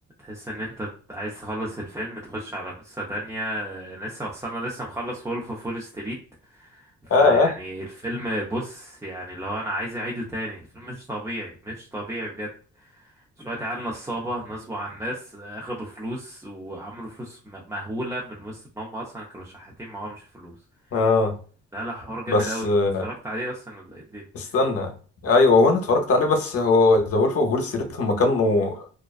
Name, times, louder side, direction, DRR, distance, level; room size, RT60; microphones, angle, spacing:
voice 1, 0.2-6.2 6.5-12.5 12.8-13.1 13.4-20.5 21.7-22.7 23.0-24.2, right 1 dB, 10° right, -4 dB, 0.5 m, -33 dB
voice 2, 7.1-7.5 20.9-21.3 22.3-23.0 24.3-24.9 25.2-28.7, left 3 dB, 50° left, 4 dB, 0.7 m, -20 dB
2.4 x 2.2 x 2.4 m, 0.40 s
cardioid pair, 90°, 30 cm